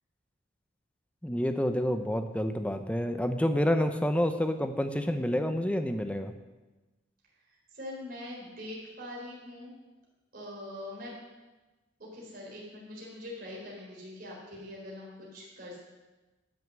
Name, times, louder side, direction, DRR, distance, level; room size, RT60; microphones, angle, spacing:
voice 1, 1.2-6.3, equal, 5° left, 8 dB, 0.7 m, -28 dB
voice 2, 7.7-9.7 10.3-11.2 12.0-15.8, left 1 dB, 50° right, -4 dB, 3.9 m, -43 dB
12.0 x 6.5 x 7.5 m, 1.2 s
head